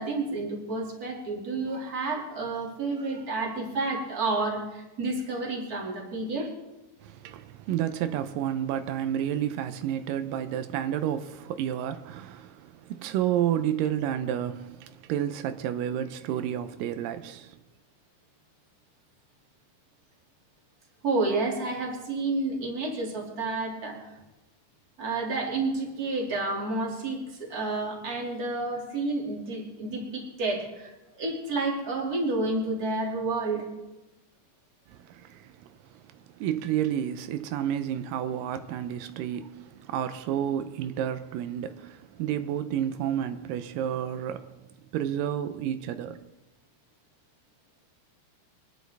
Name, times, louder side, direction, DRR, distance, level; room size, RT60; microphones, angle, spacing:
voice 1, 0.0-6.5 21.0-24.1 25.0-30.9 31.2-33.7, right 3 dB, 30° right, 2.5 m, -30 dB
voice 2, 7.0-17.6 34.9-44.6 44.9-46.3, right 10 dB, 85° right, 2.3 m, -31 dB
24.0 x 10.5 x 3.5 m
omnidirectional pair, 3.8 m